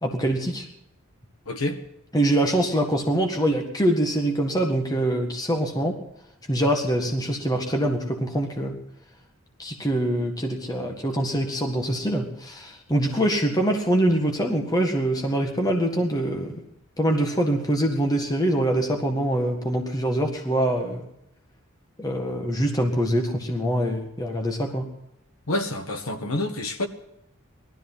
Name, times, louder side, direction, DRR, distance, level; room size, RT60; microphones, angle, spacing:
voice 1, 0.0-0.7 2.1-6.0 6.5-8.8 9.6-16.6 17.0-21.0 22.0-24.9, right 1 dB, 15° left, 1.7 m, -24 dB
voice 2, 1.5-1.8 25.5-26.9, left 2 dB, 85° left, 1.7 m, -27 dB
18.5 x 13.0 x 5.7 m
head